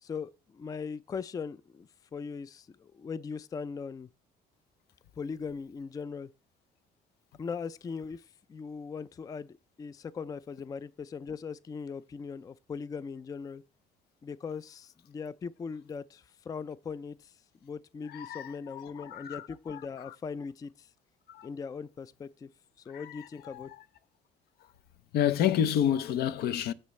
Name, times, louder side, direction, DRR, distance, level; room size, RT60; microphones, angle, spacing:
voice 1, 0.0-4.1 5.2-6.3 7.4-13.6 14.2-17.3 17.6-20.9 21.4-22.5 22.8-23.7, left 5 dB, 20° left, 0.3 m, -40 dB
voice 2, 18.1-19.4 19.7-19.8 21.3-21.5 22.9-23.2 23.5-23.7 25.1-26.7, left 10 dB, 70° left, 0.6 m, -29 dB
15.5 x 5.5 x 3.2 m
cardioid pair, 110°, 17 cm